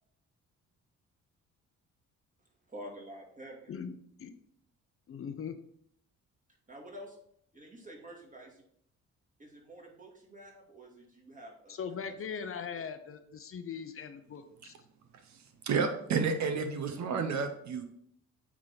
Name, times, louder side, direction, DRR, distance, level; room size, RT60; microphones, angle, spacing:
voice 1, 2.7-3.7 6.7-7.2 7.5-8.6 9.4-11.8 16.5-16.8, equal, 25° right, -1 dB, 2.2 m, -48 dB
voice 2, 5.1-5.6 11.7-14.7, left 6 dB, 45° left, 8 dB, 0.7 m, -40 dB
voice 3, 15.6-17.8, right 5 dB, 65° right, 6 dB, 0.9 m, -30 dB
8.5 x 3.7 x 4.0 m, 0.71 s
cardioid pair, 90°, 30 cm